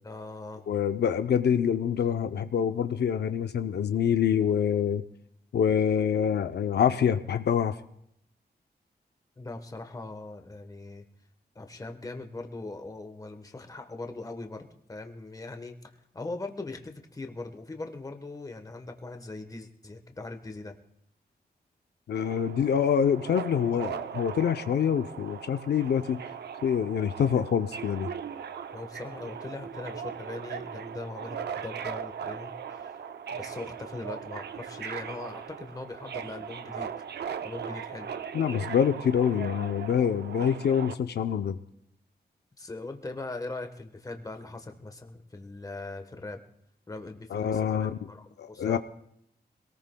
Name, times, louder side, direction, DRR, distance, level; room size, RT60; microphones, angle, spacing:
voice 1, 0.0-0.7 9.4-11.1 11.5-20.8 28.7-33.0 33.3-36.9 37.4-38.1 42.6-46.4 46.9-48.8, left 2 dB, 20° left, 5 dB, 1.1 m, -40 dB
voice 2, 0.7-5.0 5.5-7.7 22.1-26.2 26.6-28.1 38.3-41.6 47.3-47.9 48.4-48.8, left 8 dB, 80° left, 9 dB, 0.6 m, -26 dB
Subway metro underground, 22.1-40.9, right 7 dB, 80° right, 0.6 m, -39 dB
25.5 x 18.5 x 2.2 m, 0.72 s
wide cardioid pair, 155°, 17 cm